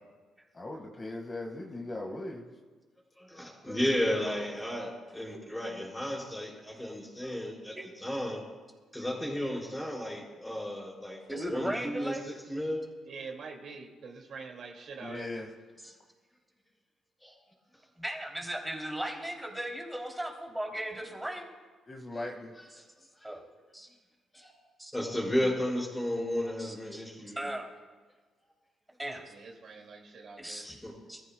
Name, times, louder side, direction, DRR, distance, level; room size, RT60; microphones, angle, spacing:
voice 1, 0.5-2.5 15.0-15.5 21.9-22.5, left 2 dB, 25° left, 1 dB, 1.7 m, -39 dB
voice 2, 3.2-8.4 8.9-12.8 17.2-17.3 24.3-24.5 24.9-27.5 30.6-30.9, equal, 10° left, -3 dB, 5.0 m, -33 dB
voice 3, 11.2-12.3 15.8-15.9 18.0-21.5 22.8-22.9 23.2-23.4 23.7-23.9 24.8-24.9 26.6-27.0 27.4-27.7 29.0-29.3 30.4-30.8 31.1-31.2, right 1 dB, 5° right, 0 dB, 3.0 m, -37 dB
voice 4, 13.1-15.3 29.3-30.7, right 4 dB, 65° right, 1 dB, 2.3 m, -45 dB
24.5 x 14.5 x 2.3 m, 1.4 s
cardioid pair, 90°, 0 cm